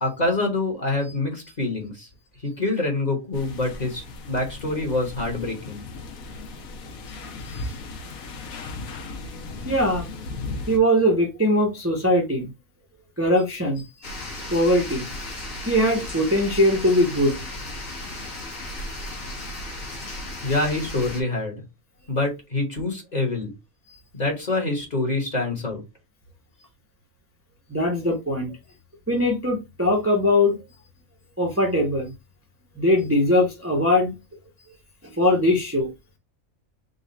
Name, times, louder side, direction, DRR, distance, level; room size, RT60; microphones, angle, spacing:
voice 1, 0.0-2.1 2.4-5.8 20.4-21.6 22.1-23.5 24.1-25.8, left 2 dB, 30° left, 1.3 m, -26 dB
sound 1, 3.3-10.8, left 3 dB, 90° left, 1.3 m, -36 dB
voice 2, 9.6-10.1 10.7-12.5 13.2-13.8 14.5-15.3 15.7-17.4 19.0-19.1 23.9-24.0 27.7-28.5 29.1-30.6 31.4-32.1 32.8-34.1 35.2-35.9, left 1 dB, 10° right, 0.8 m, -21 dB
sound 2, 14.0-21.2, left 1 dB, 70° left, 1.6 m, -35 dB
4.0 x 2.4 x 4.0 m
omnidirectional pair, 1.4 m